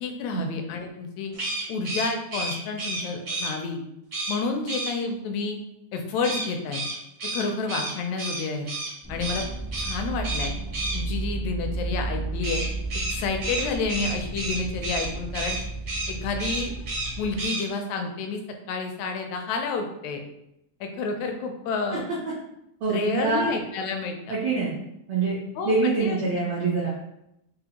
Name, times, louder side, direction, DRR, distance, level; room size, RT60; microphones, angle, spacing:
voice 1, 0.0-1.3 1.7-3.8 4.3-5.6 5.9-6.8 7.3-8.7 9.1-9.4 9.8-10.5 10.9-12.6 13.1-15.6 16.1-16.7 17.2-18.4 18.7-20.2 20.8-22.0 22.9-24.4 25.6-26.2, left 4 dB, 80° left, 4 dB, 1.8 m, -29 dB
sound 1, 1.3-3.5 4.1-4.4 4.7-4.9 6.2-8.9 9.2-9.4 9.7-10.0 10.2-11.0 12.4-15.1 15.3-15.6 15.9-16.1 16.4-17.1 17.4-17.6, right 2 dB, 55° right, 0.9 m, -31 dB
sound 2, 9.0-17.5, right 3 dB, 40° left, 0.3 m, -33 dB
voice 2, 22.8-23.5 24.3-24.7 25.1-25.4 25.6-26.9, right 4 dB, 75° right, -7 dB, 1.3 m, -24 dB
5.0 x 2.1 x 2.8 m, 0.83 s
omnidirectional pair, 3.3 m